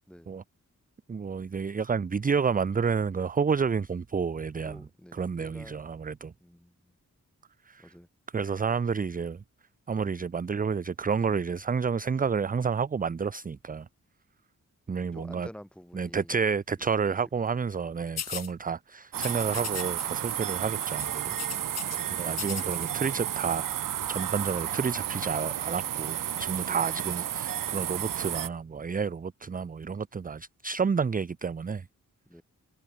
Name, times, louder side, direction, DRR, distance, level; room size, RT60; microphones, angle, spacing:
voice 1, 1.1-4.8 5.1-6.3 7.7-7.9 8.3-9.4 9.9-13.9 14.9-15.5 15.9-21.4 22.1-23.7 24.1-31.8, right 5 dB, 25° right, 0.5 m, -30 dB
voice 2, 4.6-5.8 6.4-6.9 7.8-8.1 15.1-16.3 21.9-22.5 26.6-27.0 32.3-32.4, equal, 5° left, 2.7 m, -49 dB
sound 1, 18.2-18.5 19.2-20.0 20.3-20.5 20.8-22.0 22.3-22.9, left 9 dB, 55° left, 0.6 m, -38 dB
sound 2, 19.1-28.5, right 11 dB, 80° right, 0.7 m, -32 dB
wide cardioid pair, 95°, 32 cm